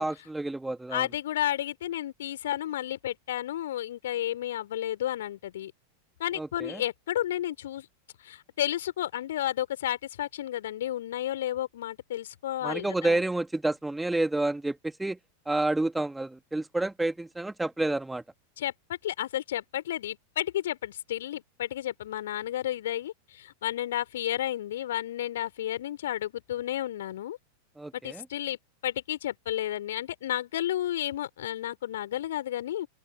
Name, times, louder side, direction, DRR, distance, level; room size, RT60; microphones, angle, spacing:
voice 1, 0.0-1.1 6.4-6.8 12.6-15.2 15.5-18.2 27.8-28.2, right 2 dB, 5° right, 2.8 m, -29 dB
voice 2, 0.9-5.7 6.2-7.9 8.2-13.2 18.6-18.7 19.0-27.4 27.9-32.9, left 12 dB, 60° left, 4.1 m, -32 dB
open air
figure-of-eight pair, 90°, 0 cm